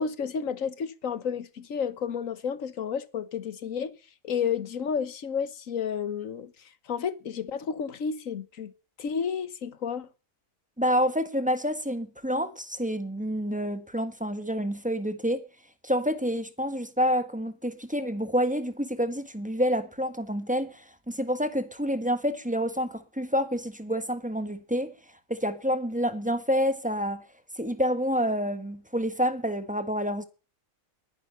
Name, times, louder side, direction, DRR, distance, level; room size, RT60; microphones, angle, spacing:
voice 1, 0.0-3.9 4.2-6.5 6.9-8.7 9.0-10.1, left 7 dB, 75° left, 1.5 m, -31 dB
voice 2, 10.8-15.4 15.8-24.9 25.3-27.2 27.5-30.2, equal, 5° right, 1.4 m, -28 dB
20.5 x 10.5 x 5.5 m
omnidirectional pair, 1.4 m